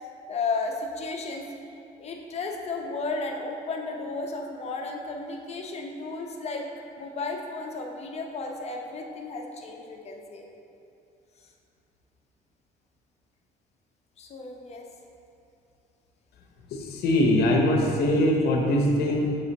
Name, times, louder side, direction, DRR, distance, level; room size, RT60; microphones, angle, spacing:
voice 1, 0.3-1.5 2.0-6.7 7.0-10.5 14.2-14.9, left 3 dB, 40° left, 2 dB, 0.7 m, -33 dB
voice 2, 16.7-19.4, left 1 dB, 70° left, 0 dB, 0.9 m, -22 dB
7.2 x 3.3 x 4.1 m, 2.6 s
cardioid pair, 110°, 17 cm